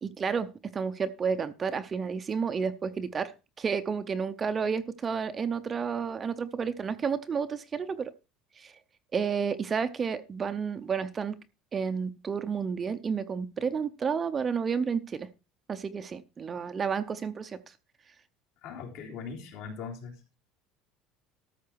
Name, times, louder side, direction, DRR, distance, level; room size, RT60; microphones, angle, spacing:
voice 1, 0.0-8.1 8.6-8.7 9.1-11.4 11.7-15.3 15.7-17.6, right 6 dB, 20° right, 0.6 m, -31 dB
voice 2, 18.6-20.4, left 6 dB, 60° left, 3.5 m, -40 dB
13.5 x 7.3 x 4.6 m
cardioid pair, 175°, 0 cm